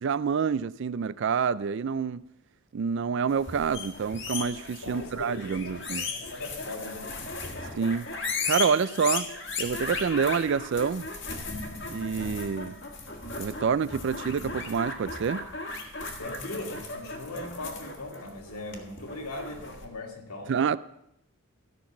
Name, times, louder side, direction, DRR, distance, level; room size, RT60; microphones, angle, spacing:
voice 1, 0.0-2.2 2.7-6.0 7.8-8.1 8.4-9.3 9.6-11.1 11.9-12.7 13.4-15.4 20.5-20.8, right 6 dB, 55° right, 0.3 m, -27 dB
sound 1, 3.3-19.8, left 3 dB, 50° left, 1.6 m, -36 dB
voice 2, 4.8-7.2 16.2-20.5, left 2 dB, 80° left, 2.3 m, -39 dB
14.0 x 5.9 x 7.1 m
head